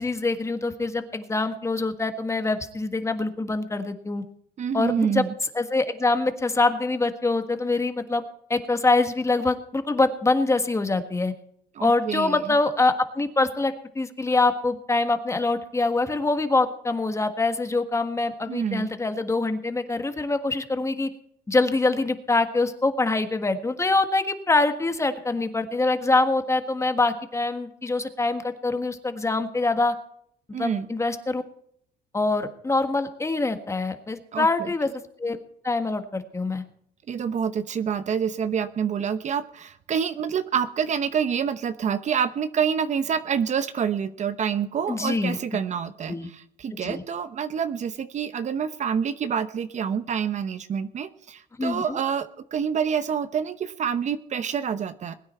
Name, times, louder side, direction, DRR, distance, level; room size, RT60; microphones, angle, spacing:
voice 1, 0.0-4.2 4.7-5.2 5.5-8.2 8.5-11.3 11.8-21.1 21.5-29.9 30.6-31.4 32.1-34.9 35.2-35.4 35.6-36.6 44.9-45.4 46.1-46.3 46.8-47.0 51.6-52.0, left 3 dB, 15° left, 9 dB, 1.5 m, -24 dB
voice 2, 4.6-5.3 11.7-12.5 18.5-18.9 30.5-30.9 34.3-34.7 37.1-55.1, right 7 dB, 45° right, 12 dB, 0.9 m, -27 dB
21.0 x 9.5 x 4.4 m, 0.69 s
cardioid pair, 110°, 17 cm